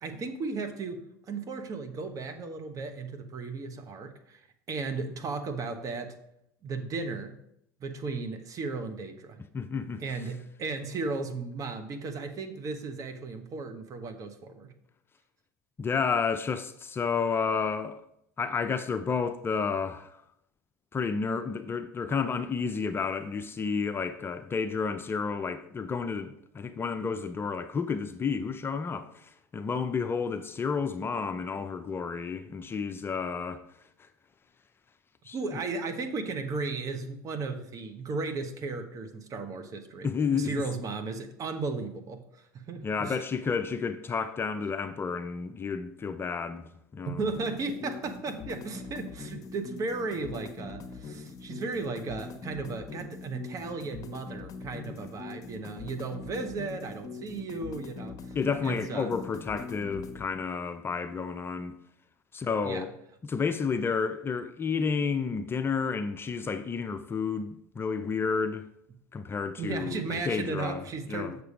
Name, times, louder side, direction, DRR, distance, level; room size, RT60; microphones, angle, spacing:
voice 1, 0.0-4.4 4.7-6.1 6.6-7.3 7.8-9.4 10.0-14.7 35.3-43.2 47.2-58.3 58.6-59.1 62.6-62.8 69.6-71.3, right 4 dB, 40° right, 1.2 m, -35 dB
voice 2, 9.5-10.0 15.8-18.0 18.4-20.2 20.9-33.6 35.3-35.6 40.0-40.6 42.8-47.2 58.3-61.7 62.3-62.9 63.2-68.6 69.1-71.4, left 5 dB, 25° left, 0.6 m, -31 dB
sound 1, 47.3-60.3, left 5 dB, 40° left, 1.1 m, -42 dB
6.7 x 6.7 x 5.1 m
hypercardioid pair, 85°, 9 cm